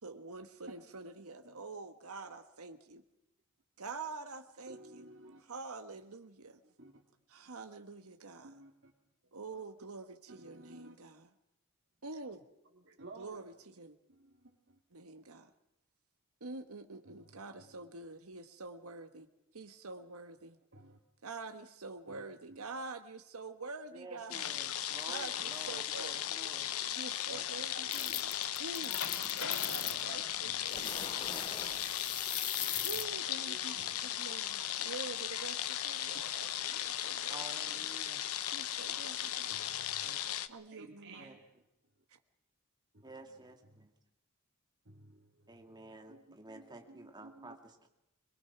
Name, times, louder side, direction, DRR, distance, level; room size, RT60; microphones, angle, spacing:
voice 1, 0.0-3.0 3.8-5.1 5.4-6.6 7.3-8.5 9.3-11.3 12.0-12.4 13.2-14.0 14.9-15.5 16.4-19.3 19.5-20.6 21.2-24.5 25.1-26.4 26.9-28.3 28.6-29.0 29.4-31.2 32.8-37.9 38.5-39.7 40.5-41.4, right 3 dB, 70° right, 7 dB, 1.4 m, -46 dB
voice 2, 4.7-5.4 6.6-7.0 7.4-7.5 8.4-8.9 10.3-11.0 12.8-13.4 14.1-14.8 17.0-17.9 20.7-21.0 22.1-22.2 22.5-22.6 26.8-26.9 27.6-28.2 28.8-29.2 29.8-30.0 30.5-30.7 32.7-33.0 33.5-34.0 36.1-36.2 37.8-38.1 39.5-40.1 40.7-41.4 43.1-43.4 43.7-43.9 44.9-47.6, right 2 dB, 55° right, 0 dB, 2.3 m, -56 dB
voice 3, 23.9-26.7 27.3-27.4 37.3-38.2 40.0-40.3 41.2-41.4 43.0-43.9 45.5-47.9, right 2 dB, 20° right, 4 dB, 2.4 m, -51 dB
sound 1, 24.3-40.5, left 11 dB, 75° left, 0.9 m, -37 dB
sound 2, 27.9-30.0 30.7-33.1, left 8 dB, 20° left, 0.7 m, -39 dB
23.0 x 22.5 x 6.0 m, 0.87 s
head